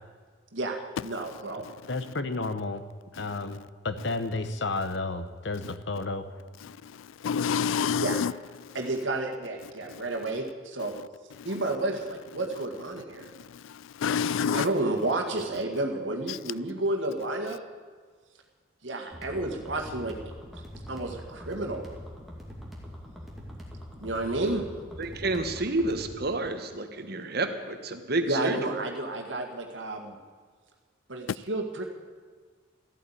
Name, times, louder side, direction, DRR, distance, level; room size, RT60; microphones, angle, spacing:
voice 1, 0.5-1.7 8.0-8.2 8.7-10.9 11.5-13.3 14.3-17.6 18.8-20.2 20.5-21.8 24.0-24.6 28.3-30.2 31.1-31.9, right 2 dB, 70° right, 1.8 m, -31 dB
voice 2, 1.5-2.8 3.1-6.3, left 3 dB, 60° left, 0.9 m, -32 dB
voice 3, 6.6-8.3 8.6-8.8 9.9-10.0 11.4-11.6 13.2-14.7 16.3-16.4, left 7 dB, 80° left, 0.3 m, -29 dB
sound 1, 19.1-26.1, equal, ahead, 2.4 m, -43 dB
voice 4, 25.0-28.7, right 2 dB, 50° right, 1.3 m, -30 dB
14.5 x 8.4 x 10.0 m
head